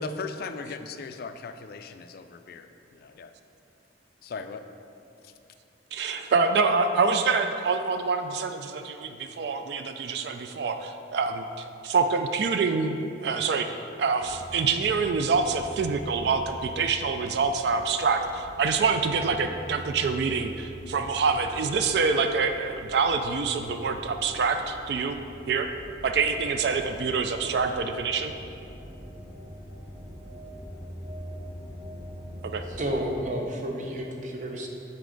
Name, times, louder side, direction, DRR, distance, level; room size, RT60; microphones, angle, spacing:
voice 1, 0.0-3.3 4.2-4.7 5.2-5.3, left 5 dB, 55° left, 9 dB, 0.3 m, -38 dB
voice 2, 5.9-13.7 14.0-25.2 25.5-25.7 26.0-28.3 32.4-32.6, right 4 dB, 60° right, 7 dB, 0.3 m, -26 dB
sound 1, 14.2-33.2, equal, 15° right, 1.1 m, -43 dB
voice 3, 32.7-34.7, right 1 dB, 40° right, 1 dB, 0.7 m, -31 dB
8.1 x 4.4 x 3.9 m, 2.7 s
head